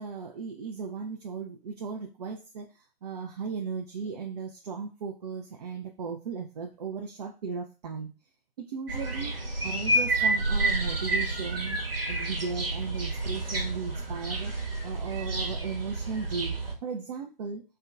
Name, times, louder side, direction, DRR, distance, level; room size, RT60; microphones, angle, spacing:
voice 1, 0.0-8.1 8.7-9.3 9.6-11.8 12.1-17.6, right 5 dB, 45° right, 3 dB, 0.4 m, -36 dB
sound 1, 8.9-16.7, right 2 dB, 75° right, 1.1 m, -29 dB
4.4 x 2.1 x 2.4 m, 0.32 s
figure-of-eight pair, 120°, 29 cm